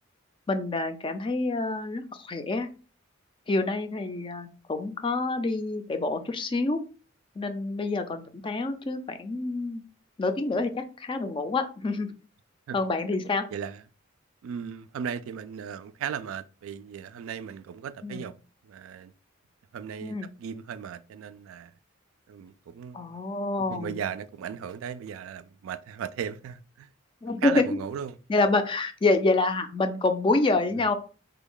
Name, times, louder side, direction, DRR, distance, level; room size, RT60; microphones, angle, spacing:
voice 1, 0.5-2.7 3.5-6.8 7.4-9.8 10.2-12.1 12.7-13.5 18.0-18.2 20.0-20.3 22.9-24.0 27.2-27.6 28.3-31.0, left 3 dB, 25° left, 0.4 m, -27 dB
voice 2, 13.5-13.8 14.4-18.3 18.6-19.1 19.7-21.7 22.3-23.2 23.7-26.9 27.4-28.2 30.7-30.8, right 8 dB, 85° right, 0.3 m, -36 dB
3.4 x 2.2 x 3.6 m
head